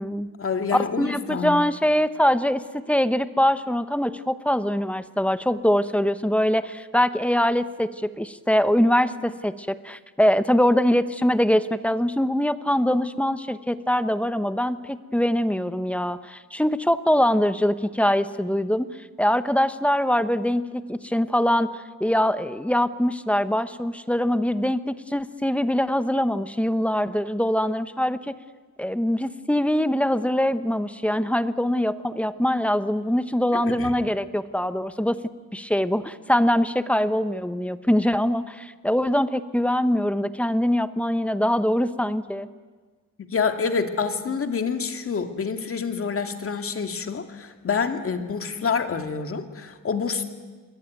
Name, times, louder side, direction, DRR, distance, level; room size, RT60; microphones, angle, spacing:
voice 1, 0.4-1.6 33.5-33.9 43.2-50.2, left 5 dB, 45° left, 7 dB, 2.3 m, -27 dB
voice 2, 1.0-18.9 19.2-28.3 28.8-35.2 35.5-42.5, equal, 5° left, 12 dB, 1.0 m, -23 dB
27.5 x 22.0 x 9.4 m, 1.4 s
wide cardioid pair, 130°, 31 cm